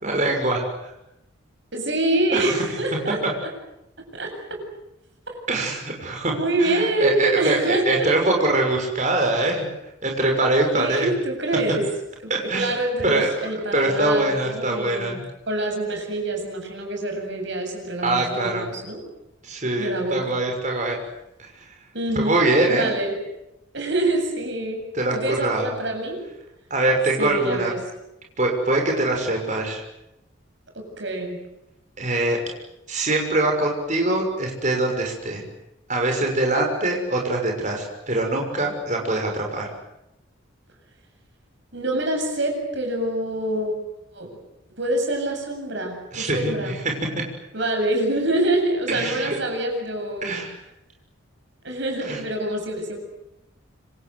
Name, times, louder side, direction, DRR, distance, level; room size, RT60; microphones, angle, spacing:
voice 1, 0.0-0.9 2.3-2.6 3.2-3.3 5.5-6.3 6.6-9.7 10.0-11.1 12.3-12.7 13.0-13.3 13.7-15.2 18.0-18.7 19.4-21.0 21.4-21.5 22.1-22.9 24.9-25.7 26.7-27.7 28.4-29.8 32.0-32.4 32.9-35.4 35.9-39.7 46.1-47.2 48.9-49.4 50.2-50.5 52.0-52.2, right 2 dB, 35° right, 2 dB, 6.3 m, -23 dB
voice 2, 1.7-3.2 4.1-4.6 6.3-8.1 10.7-11.8 12.2-15.2 15.5-19.0 19.8-20.4 21.9-22.4 22.7-23.2 23.7-24.8 25.1-26.2 27.2-27.8 30.7-31.4 41.7-43.8 44.1-44.3 44.8-46.7 47.5-50.4 51.6-53.0, right 1 dB, 60° right, 3 dB, 7.9 m, -26 dB
27.0 x 25.5 x 8.0 m, 0.88 s
head